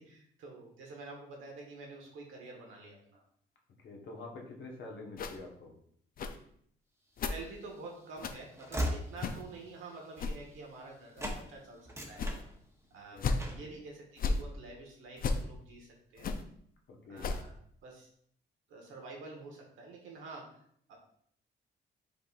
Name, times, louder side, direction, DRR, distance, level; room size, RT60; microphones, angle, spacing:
voice 1, 0.0-3.2 7.2-12.3 12.9-16.3 17.1-18.1 18.7-20.4 20.9-21.0, right 3 dB, 85° right, 0 dB, 1.4 m, -48 dB
voice 2, 3.8-5.7 13.1-13.3 16.9-17.3, left 2 dB, 60° left, 0 dB, 1.2 m, -46 dB
sound 1, 5.2-5.4 6.2-6.4 7.2-7.4 8.2-8.4 9.2-9.4 10.2-10.4 11.2-11.4 12.2-12.4 13.2-13.4 14.2-14.4 15.2-15.4 16.2-16.4 17.2-17.4, left 4 dB, 45° left, 0.5 m, -33 dB
Train / Slam, 7.4-10.9 11.2-11.4 11.8-13.0 13.4-13.7, equal, 15° right, 0.9 m, -39 dB
5.1 x 4.0 x 2.5 m, 0.66 s
cardioid pair, 90°, 20 cm